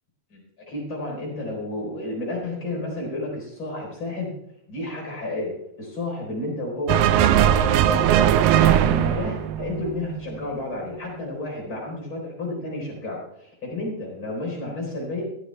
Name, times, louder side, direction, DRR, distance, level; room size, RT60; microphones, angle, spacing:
voice 1, 0.7-4.3 4.7-5.5 5.8-8.1 8.6-15.2, left 2 dB, 30° left, -1 dB, 4.3 m, -31 dB
sound 1, 6.9-10.4, right 11 dB, 90° right, 2.0 m, -19 dB
15.0 x 12.5 x 3.3 m, 0.76 s
omnidirectional pair, 4.7 m